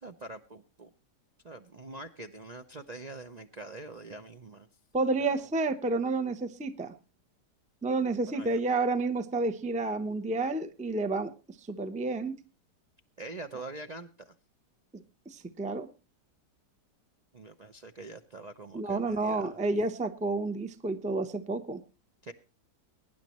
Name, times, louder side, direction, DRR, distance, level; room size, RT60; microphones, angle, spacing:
voice 1, 0.0-0.9 1.4-4.7 5.2-5.3 8.3-8.6 13.2-14.3 17.3-19.6 22.2-22.3, right 2 dB, 70° right, 4 dB, 0.4 m, -44 dB
voice 2, 4.9-6.9 7.8-11.3 11.6-12.4 14.9-15.9 18.7-21.8, right 3 dB, 10° right, 10 dB, 0.5 m, -30 dB
23.0 x 10.0 x 3.1 m, 0.31 s
omnidirectional pair, 1.8 m